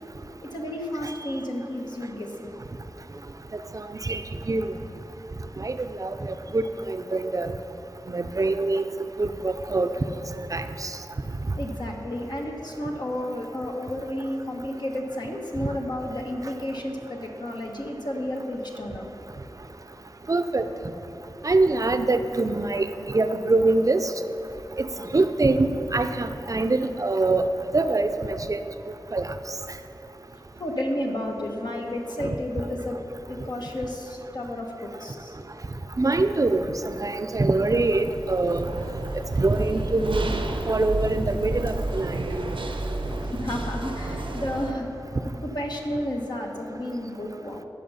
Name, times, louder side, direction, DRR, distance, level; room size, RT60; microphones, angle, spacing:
voice 1, 0.4-2.5 11.6-19.1 30.6-33.0 33.3-35.4 43.2-44.9 45.4-47.6, left 1 dB, 60° left, 0 dB, 1.4 m, -32 dB
voice 2, 3.7-4.7 5.6-7.5 8.1-8.8 9.2-9.9 10.4-10.9 20.3-20.6 21.4-24.1 24.8-24.9 25.1-27.5 27.7-28.6 29.1-29.3 32.2-32.3 36.0-38.7 39.3-40.4 40.7-42.2, right 2 dB, 40° right, 9 dB, 0.6 m, -24 dB
sound 1, 37.9-44.7, right 2 dB, 90° right, 0.8 m, -31 dB
14.5 x 5.9 x 5.7 m, 3.0 s
wide cardioid pair, 55°, 8 cm